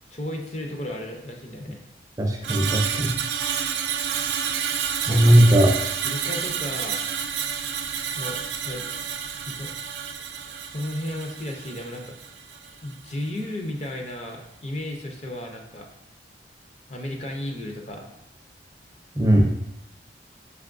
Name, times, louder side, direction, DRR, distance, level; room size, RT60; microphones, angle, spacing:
voice 1, 0.1-1.8 5.0-5.4 6.0-7.4 8.1-8.4 8.6-8.9 9.5-9.7 10.4-12.2 12.8-15.9 16.9-18.1, left 1 dB, 40° left, 2 dB, 0.5 m, -34 dB
voice 2, 2.2-3.2 5.1-5.8 19.2-19.5, right 1 dB, 20° right, 1 dB, 0.4 m, -17 dB
Screech, 2.4-12.8 13.1-13.4, right 8 dB, 80° right, 0.4 m, -30 dB
5.2 x 3.4 x 2.5 m, 0.81 s
head